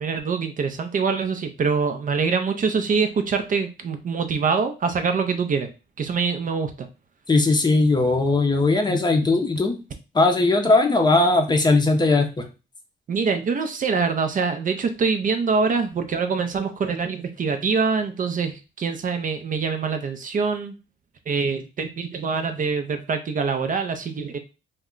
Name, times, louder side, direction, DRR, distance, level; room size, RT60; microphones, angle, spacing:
voice 1, 0.0-5.7 6.0-6.9 13.1-20.7 21.3-24.4, right 5 dB, 40° right, 7 dB, 0.5 m, -24 dB
voice 2, 7.3-9.8 10.1-12.5, left 2 dB, 20° left, 4 dB, 0.6 m, -19 dB
2.2 x 2.2 x 3.7 m, 0.30 s
cardioid pair, 90°, 20 cm